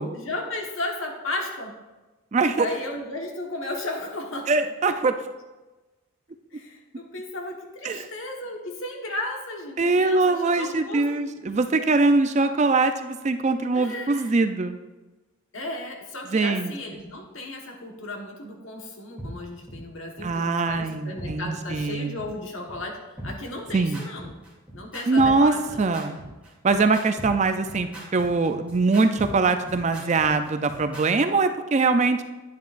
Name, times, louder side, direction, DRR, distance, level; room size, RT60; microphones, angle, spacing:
voice 1, 0.1-1.7 2.6-4.5 6.5-11.5 13.7-14.3 15.5-24.3 24.7-25.8 27.8-27.9, left 2 dB, 65° left, 2 dB, 1.4 m, -34 dB
voice 2, 2.3-2.7 4.5-5.1 7.8-8.1 9.8-14.8 16.3-16.7 20.2-22.1 23.7-24.0 25.1-26.2 26.6-32.2, right 3 dB, 30° right, 8 dB, 0.4 m, -22 dB
sound 1, 19.2-19.3 19.7-19.8 20.2-20.3 20.7-20.8 21.2-21.3 21.7-21.8 22.2-22.3 22.7-22.8 23.2-31.0, right 1 dB, 5° right, 2.6 m, -39 dB
10.5 x 9.1 x 2.5 m, 1.2 s
head